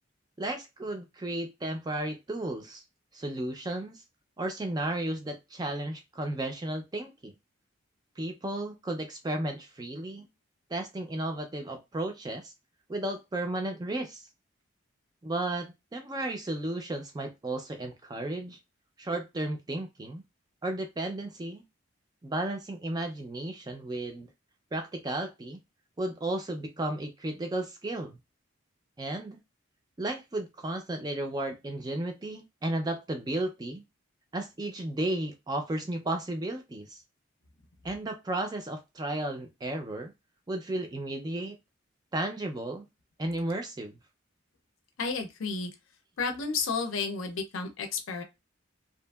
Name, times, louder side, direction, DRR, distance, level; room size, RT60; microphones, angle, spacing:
voice 1, 0.4-2.8 3.1-4.0 4.4-7.3 8.2-10.3 10.7-12.5 12.9-14.2 15.2-18.6 19.0-20.2 20.6-21.6 22.2-24.3 24.7-25.6 26.0-28.2 29.0-29.4 30.0-33.8 34.3-37.0 37.8-40.1 40.5-41.6 42.1-42.8 43.2-44.0, right 1 dB, 20° right, 4 dB, 0.4 m, -34 dB
voice 2, 45.0-45.7 46.2-48.2, left 4 dB, 80° left, 5 dB, 0.5 m, -32 dB
2.7 x 2.4 x 2.3 m, 0.23 s
head